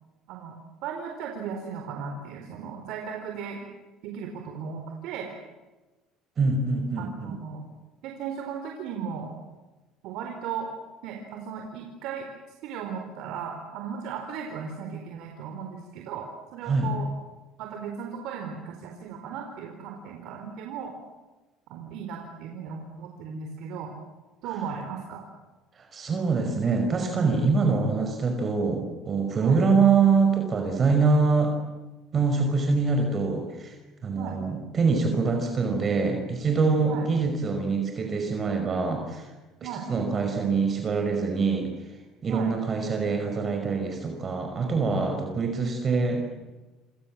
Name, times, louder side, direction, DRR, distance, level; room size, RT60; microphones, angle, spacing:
voice 1, 0.8-3.7 4.0-5.3 7.0-7.6 8.0-9.3 10.0-10.7 11.0-12.3 12.6-16.3 16.5-17.1 17.6-20.9 21.7-23.9 24.4-25.2 29.4-29.6 34.1-34.4 36.9-37.1 39.6-39.9 42.3-42.5, right 7 dB, 70° right, 2 dB, 4.3 m, -36 dB
voice 2, 6.4-7.3 16.7-16.9 25.8-31.5 32.1-33.8 34.0-39.3 39.6-41.7 42.2-46.5, right 4 dB, 35° right, 4 dB, 5.4 m, -24 dB
27.5 x 27.5 x 7.6 m, 1.2 s
supercardioid pair, 90°, 0 cm